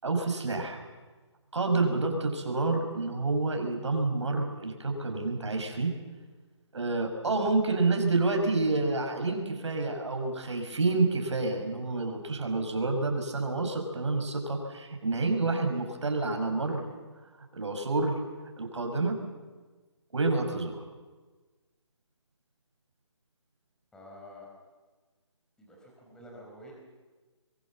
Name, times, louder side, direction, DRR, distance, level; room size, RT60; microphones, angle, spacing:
voice 1, 0.0-0.8 1.5-5.9 6.7-16.9 17.5-18.2 18.6-19.2 20.1-20.8, right 3 dB, 70° right, 4 dB, 5.6 m, -28 dB
voice 2, 23.9-24.5 25.6-26.7, left 1 dB, 5° left, -3 dB, 4.8 m, -49 dB
24.0 x 22.5 x 7.4 m, 1.3 s
hypercardioid pair, 155°, 16 cm